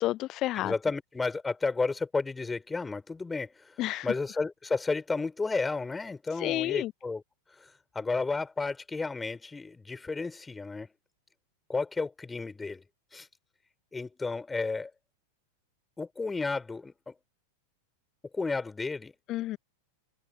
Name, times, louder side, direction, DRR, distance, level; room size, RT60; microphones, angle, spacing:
voice 1, 0.0-0.7 3.8-4.0 6.4-6.9 19.3-19.6, left 15 dB, 35° left, 0.6 m, -30 dB
voice 2, 0.5-7.2 7.6-10.9 11.7-12.8 13.1-13.3 13.9-14.9 16.0-17.1 18.3-19.1, left 3 dB, 10° left, 5.5 m, -32 dB
figure-of-eight pair, 90°, 0 cm